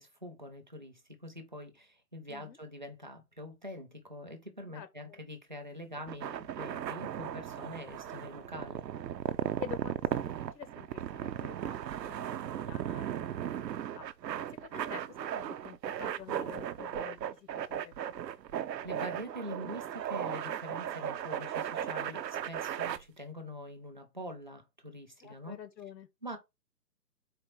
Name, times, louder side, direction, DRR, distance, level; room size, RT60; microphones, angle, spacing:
voice 1, 0.0-8.9 18.8-25.6 26.2-26.4, equal, 30° right, 0.5 m, -44 dB
voice 2, 4.7-5.2 9.6-12.2 12.6-14.1 14.6-17.9 25.2-26.1, left 9 dB, 80° left, 0.8 m, -48 dB
sound 1, 6.0-23.0, right 10 dB, 80° right, 0.6 m, -36 dB
4.3 x 2.3 x 4.3 m
hypercardioid pair, 165°, 50 cm